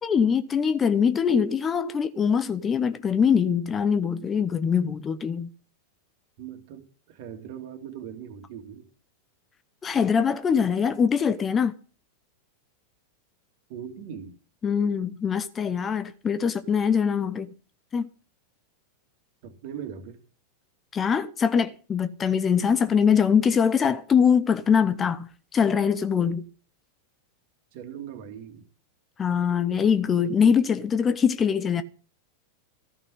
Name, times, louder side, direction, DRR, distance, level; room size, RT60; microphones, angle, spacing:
voice 1, 0.0-5.5 9.8-11.7 14.6-17.5 17.9-18.1 20.9-26.4 29.2-31.8, left 7 dB, 20° left, 0.9 m, -23 dB
voice 2, 6.4-8.9 13.7-14.4 19.4-20.2 27.7-28.7, right 8 dB, 50° right, 2.2 m, -40 dB
14.5 x 5.9 x 9.8 m
figure-of-eight pair, 90°, 0 cm